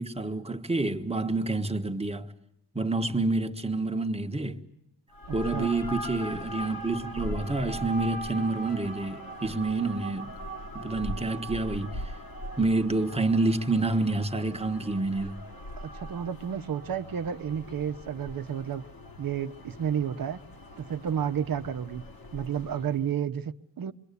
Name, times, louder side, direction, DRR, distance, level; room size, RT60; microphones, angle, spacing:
voice 1, 0.0-2.3 2.7-4.6 5.3-10.3 10.7-12.1 12.6-15.4, right 2 dB, 15° right, 1.5 m, -28 dB
sound 1, 5.1-23.0, equal, 55° left, 2.7 m, -40 dB
voice 2, 15.8-18.8 19.2-20.4 20.8-22.0 22.3-23.9, right 8 dB, 50° right, 1.0 m, -31 dB
27.5 x 23.5 x 8.4 m
wide cardioid pair, 175°, 43 cm